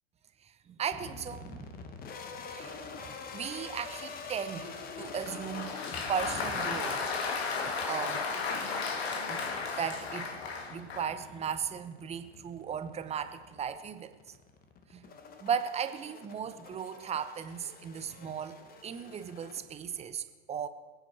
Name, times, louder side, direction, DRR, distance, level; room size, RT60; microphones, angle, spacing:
voice 1, 0.4-1.8 2.5-7.2 7.9-8.3 8.7-8.9 9.3-9.5 9.8-10.4 10.7-14.3 14.9-15.1 15.4-20.7, right 7 dB, 20° right, 11 dB, 0.9 m, -37 dB
sound 1, 0.9-20.1, left 5 dB, 25° left, 1.3 m, -47 dB
Applause, 5.0-11.2, left 4 dB, 65° left, 2.0 m, -34 dB
26.0 x 9.1 x 4.6 m, 1.4 s
figure-of-eight pair, 95°, 34 cm